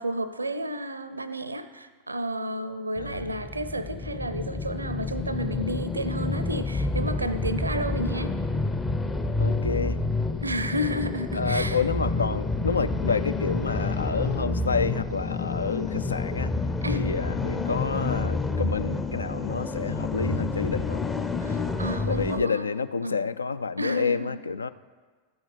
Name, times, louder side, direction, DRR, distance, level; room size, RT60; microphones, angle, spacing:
voice 1, 0.0-8.4 10.4-11.8 16.8-17.1 21.4-22.7 23.0-23.2 23.8-24.3, equal, 80° right, 13 dB, 0.5 m, -31 dB
voice 2, 3.0-3.3 9.4-10.0 11.3-16.5 16.9-21.0 22.1-24.7, left 5 dB, 75° left, 15 dB, 0.3 m, -29 dB
sound 1, 3.0-22.4, left 3 dB, 15° left, 0.6 m, -29 dB
14.0 x 6.3 x 5.0 m, 1.5 s
figure-of-eight pair, 90°, 0 cm